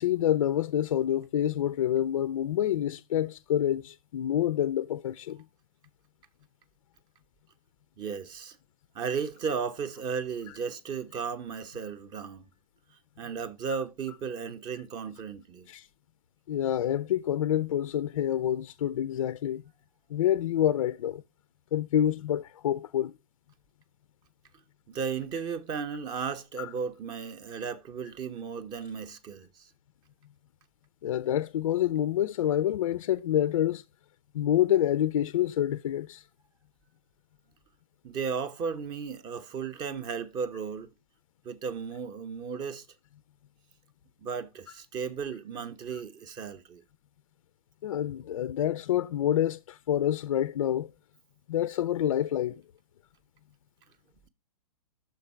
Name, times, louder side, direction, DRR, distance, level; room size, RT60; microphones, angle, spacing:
voice 1, 0.0-5.4 15.7-15.9 16.5-19.6 20.1-21.2 21.7-23.1 26.6-26.7 31.0-33.8 34.3-36.2 47.8-50.9 51.5-52.6, left 11 dB, 55° left, 0.4 m, -27 dB
voice 2, 8.0-8.6 8.9-12.4 13.2-15.7 24.9-29.7 38.0-40.9 41.4-42.9 44.2-46.8, right 6 dB, 20° right, 0.7 m, -35 dB
6.4 x 3.9 x 5.5 m
figure-of-eight pair, 120°, 20 cm